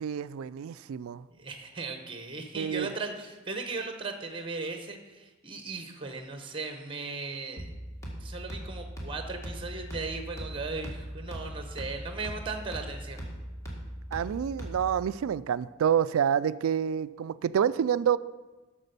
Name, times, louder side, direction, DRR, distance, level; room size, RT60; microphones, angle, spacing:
voice 1, 0.0-1.2 2.6-2.9 14.1-18.2, right 8 dB, 80° right, 17 dB, 0.3 m, -28 dB
voice 2, 1.4-7.7 8.2-13.2, right 3 dB, 25° right, 6 dB, 0.9 m, -37 dB
sound 1, 7.6-15.1, equal, 15° left, 1.8 m, -40 dB
8.2 x 6.1 x 6.7 m, 1.2 s
head